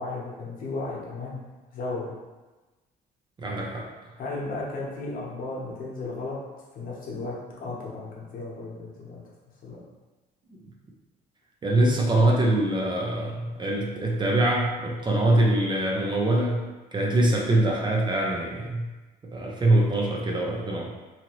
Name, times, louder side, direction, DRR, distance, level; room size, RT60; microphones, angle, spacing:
voice 1, 0.0-1.4 1.7-2.1 4.1-6.4 6.7-7.4 7.6-9.2 9.6-9.8, left 3 dB, 55° left, -4 dB, 0.9 m, -34 dB
voice 2, 3.4-3.9 10.5-10.6 11.6-16.6 16.9-18.9 19.3-20.9, right 1 dB, 25° right, -2 dB, 0.5 m, -23 dB
2.8 x 2.6 x 3.0 m, 1.2 s
cardioid pair, 110°, 17 cm